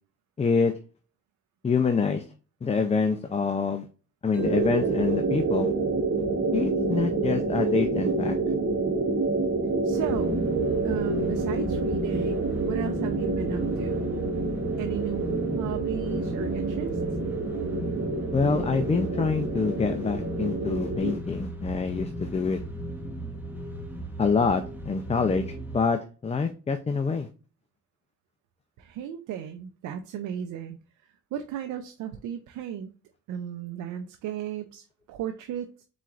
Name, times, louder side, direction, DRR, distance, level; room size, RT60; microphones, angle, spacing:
voice 1, 0.4-0.7 1.6-2.2 2.6-3.9 4.2-5.7 6.5-8.4 18.3-22.6 24.2-27.3, left 5 dB, 20° left, 7 dB, 0.5 m, -26 dB
Mallet percussion, 4.3-8.4, left 3 dB, 55° left, 2.1 m, -53 dB
sound 1, 4.4-21.2, right 3 dB, 45° right, 1.2 m, -28 dB
voice 2, 9.8-10.4 10.8-14.1 14.8-17.0 28.8-30.8 31.3-32.9 33.3-35.8, right 10 dB, 85° right, 6 dB, 0.6 m, -35 dB
sound 2, 9.9-25.8, equal, 5° right, 1.1 m, -35 dB
4.4 x 4.0 x 2.5 m, 0.36 s
cardioid pair, 90°, 30 cm